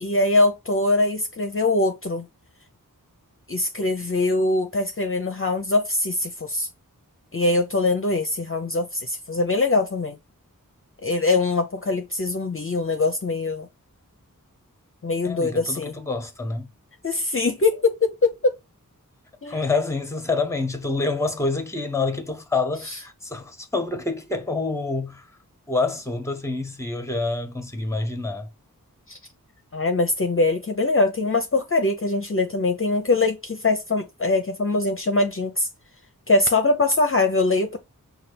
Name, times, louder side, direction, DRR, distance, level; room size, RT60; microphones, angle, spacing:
voice 1, 0.0-2.3 3.5-6.7 7.3-10.2 11.0-13.7 15.0-16.0 17.0-18.5 19.4-19.6 29.1-29.2 29.7-35.7 36.3-37.8, left 2 dB, 40° left, 0.6 m, -22 dB
voice 2, 15.2-16.7 19.5-25.3 25.7-28.5, left 3 dB, 10° left, 0.9 m, -27 dB
5.6 x 2.3 x 3.3 m
wide cardioid pair, 70°, 34 cm